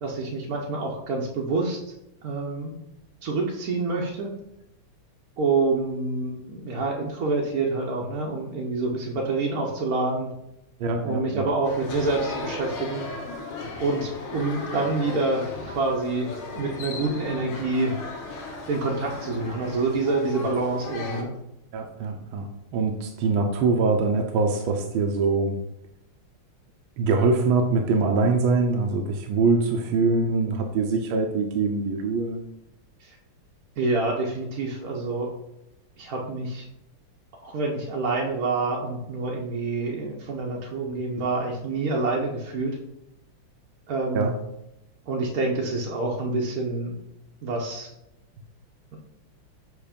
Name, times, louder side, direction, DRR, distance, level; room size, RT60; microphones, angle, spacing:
voice 1, 0.0-1.9 2.2-2.7 3.2-4.3 5.4-10.3 11.0-13.1 13.8-16.3 16.5-17.9 18.7-21.3 33.0-33.2 33.8-35.3 36.0-36.7 37.4-42.8 43.9-44.3 45.1-46.9 47.4-47.9 48.9-49.0, right 3 dB, 55° right, -2 dB, 1.1 m, -27 dB
voice 2, 10.8-11.4 21.7-25.6 27.0-32.4 44.1-44.3, right 3 dB, 75° right, 3 dB, 1.5 m, -23 dB
sound 1, 11.6-21.2, left 3 dB, 75° left, 2.0 m, -36 dB
8.2 x 3.1 x 5.1 m, 0.85 s
omnidirectional pair, 2.4 m